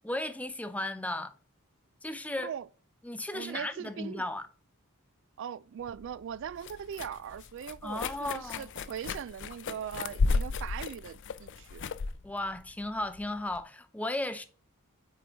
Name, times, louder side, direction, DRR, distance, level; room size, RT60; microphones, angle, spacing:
voice 1, 0.0-1.3 2.0-2.5 3.0-4.5 7.8-8.7 12.2-14.4, left 1 dB, 5° left, 0.5 m, -35 dB
voice 2, 3.3-4.2 5.4-11.9, right 8 dB, 60° right, 0.3 m, -40 dB
sound 1, 5.8-13.6, left 4 dB, 55° left, 0.4 m, -34 dB
8.9 x 3.7 x 4.4 m
head